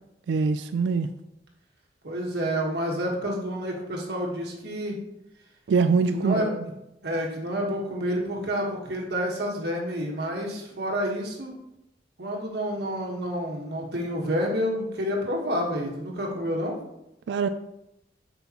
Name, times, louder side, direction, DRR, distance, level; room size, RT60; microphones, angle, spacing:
voice 1, 0.3-1.1 5.7-6.6 17.3-17.5, right 5 dB, 85° right, 10 dB, 0.3 m, -23 dB
voice 2, 2.0-5.0 6.1-6.7 7.0-11.5 12.2-16.8, equal, 65° right, -1 dB, 1.4 m, -29 dB
8.0 x 5.5 x 3.0 m, 0.86 s
head